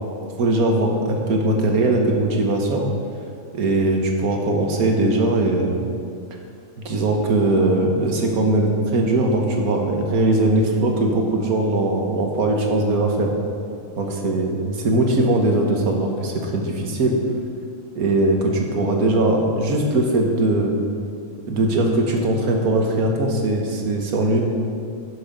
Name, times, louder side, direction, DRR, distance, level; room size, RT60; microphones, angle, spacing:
voice 1, 0.4-2.9 3.5-5.8 6.9-13.3 14.0-17.2 18.0-20.7 21.5-24.4, right 2 dB, 85° right, 1 dB, 1.7 m, -20 dB
11.5 x 6.3 x 5.2 m, 2.3 s
omnidirectional pair, 1.5 m